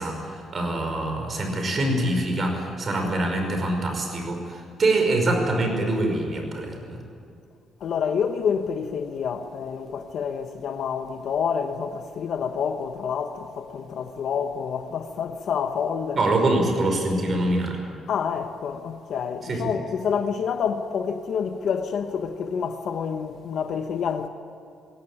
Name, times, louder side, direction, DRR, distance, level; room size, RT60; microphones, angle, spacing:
voice 1, 0.0-7.0 16.1-17.8 19.4-19.7, right 2 dB, 40° right, 5.4 m, -24 dB
voice 2, 7.8-16.3 18.1-24.3, left 7 dB, 65° left, 1.2 m, -28 dB
21.0 x 17.0 x 9.1 m
cardioid pair, 110°, 0 cm